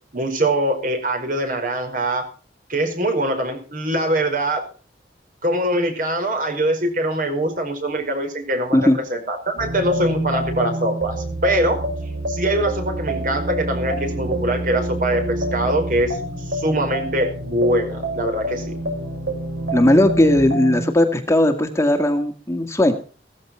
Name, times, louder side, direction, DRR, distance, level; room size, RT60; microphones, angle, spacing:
voice 1, 0.1-2.3 2.7-4.7 5.4-11.8 12.3-16.2 16.4-18.7, right 1 dB, 50° right, 5 dB, 4.9 m, -23 dB
sound 1, 9.6-20.9, right 1 dB, 75° right, 7.3 m, -27 dB
voice 2, 19.7-22.9, left 1 dB, 15° left, 5 dB, 1.8 m, -17 dB
17.0 x 14.5 x 4.4 m, 0.38 s
head